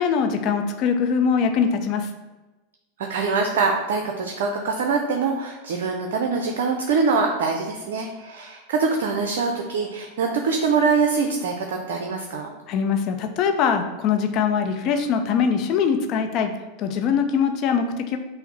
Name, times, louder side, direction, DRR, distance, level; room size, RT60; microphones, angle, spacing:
voice 1, 0.0-2.1 12.7-16.5 16.8-18.2, left 6 dB, 50° left, 6 dB, 0.5 m, -22 dB
voice 2, 3.0-12.5, right 4 dB, 70° right, 3 dB, 0.5 m, -24 dB
5.6 x 2.0 x 4.0 m, 1.1 s
hypercardioid pair, 100°, 0 cm